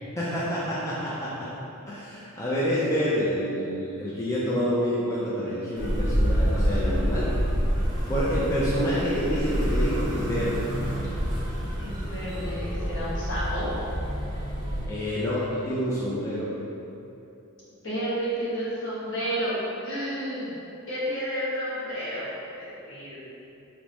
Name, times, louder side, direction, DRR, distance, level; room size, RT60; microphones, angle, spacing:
voice 1, 0.2-1.5 1.9-7.3 8.1-10.6 14.9-16.5, equal, 15° left, -9 dB, 0.4 m, -28 dB
sound 1, 5.7-14.9, equal, 20° right, 0.7 m, -27 dB
voice 2, 8.6-9.0 11.8-13.7 17.8-20.5 20.9-23.2, equal, 60° left, -10 dB, 1.2 m, -31 dB
5.1 x 2.0 x 2.9 m, 2.9 s
head